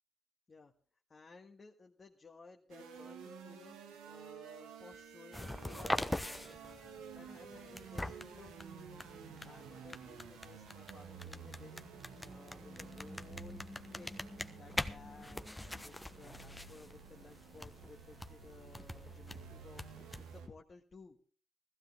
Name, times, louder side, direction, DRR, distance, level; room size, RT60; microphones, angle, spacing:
voice 1, 1.1-6.5 7.1-8.5 9.4-13.6 13.9-14.1 14.6-15.4 15.8-21.2, left 4 dB, 40° left, 2 dB, 1.6 m, -57 dB
sound 1, 2.7-20.5, right 6 dB, 85° right, 1.5 m, -52 dB
sound 2, 5.3-20.4, left 1 dB, 15° left, 1.1 m, -44 dB
15.5 x 15.0 x 3.5 m, 0.43 s
hypercardioid pair, 45°, 0 cm